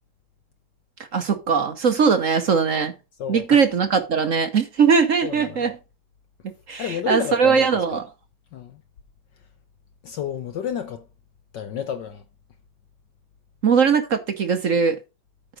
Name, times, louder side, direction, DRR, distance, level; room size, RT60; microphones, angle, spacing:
voice 1, 1.1-2.9 3.3-5.7 6.4-8.0 13.6-14.9, right 6 dB, 55° right, 0.9 m, -20 dB
voice 2, 3.2-3.6 5.2-5.7 6.8-8.0 8.5-8.8 10.0-11.0 11.5-12.2, left 8 dB, 65° left, 1.2 m, -31 dB
9.0 x 5.5 x 4.9 m
omnidirectional pair, 2.4 m